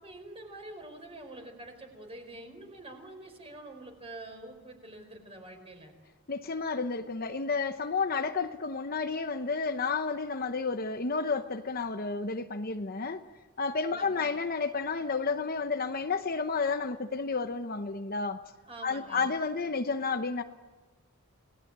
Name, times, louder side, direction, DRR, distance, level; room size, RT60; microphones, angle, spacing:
voice 1, 0.0-5.9 13.9-14.3 18.7-19.3, right 2 dB, 25° right, 4.8 m, -46 dB
voice 2, 6.3-13.2 13.6-18.4 18.8-20.4, left 4 dB, 40° left, 0.9 m, -31 dB
29.0 x 19.0 x 8.8 m
head